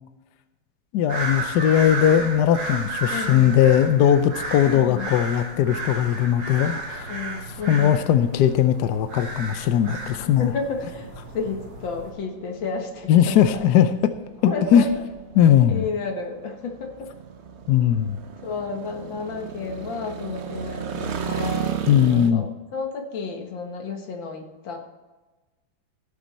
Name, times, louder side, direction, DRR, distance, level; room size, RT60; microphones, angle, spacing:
voice 1, 0.9-7.1 7.7-10.5 13.1-13.9 14.4-14.8 15.3-15.9 17.7-18.2 21.9-22.5, left 10 dB, 70° left, 10 dB, 1.1 m, -19 dB
sound 1, 1.1-12.1, right 2 dB, 70° right, 2.6 m, -33 dB
voice 2, 3.1-3.5 4.7-5.1 7.1-8.0 10.2-13.6 14.5-14.9 15.7-17.1 18.4-21.8 22.1-24.8, left 4 dB, 85° left, 3 dB, 2.3 m, -32 dB
sound 2, 6.8-22.3, right 7 dB, 50° right, 0.8 m, -36 dB
16.5 x 7.1 x 4.2 m, 1.2 s
omnidirectional pair, 2.0 m